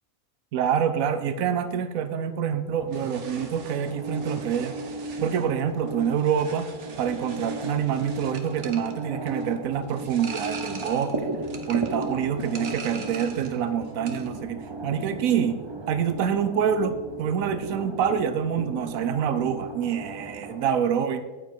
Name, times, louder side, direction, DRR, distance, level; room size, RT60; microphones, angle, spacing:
voice 1, 0.5-4.7 5.2-6.7 7.0-11.3 11.7-15.6 15.9-21.2, right 8 dB, 85° right, 10 dB, 1.0 m, -26 dB
sound 1, 2.7-20.7, right 2 dB, 25° right, 0.7 m, -36 dB
sound 2, 2.9-13.6 13.9-14.4, right 4 dB, 60° right, 1.4 m, -43 dB
9.2 x 8.6 x 4.5 m, 1.3 s
omnidirectional pair, 1.4 m